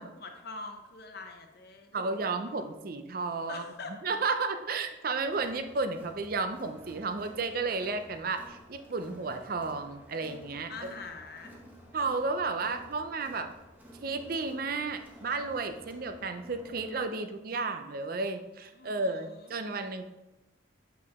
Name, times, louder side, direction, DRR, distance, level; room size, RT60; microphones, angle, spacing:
voice 1, 0.0-2.6 3.5-4.0 10.7-11.5 18.7-19.2, left 3 dB, 50° left, 4 dB, 0.9 m, -44 dB
voice 2, 1.9-3.6 4.0-10.7 11.9-13.5 14.0-20.1, right 3 dB, 45° right, 8 dB, 0.5 m, -33 dB
Crowd, 5.2-17.0, equal, 10° right, 0.9 m, -53 dB
8.0 x 4.8 x 3.6 m, 0.99 s
head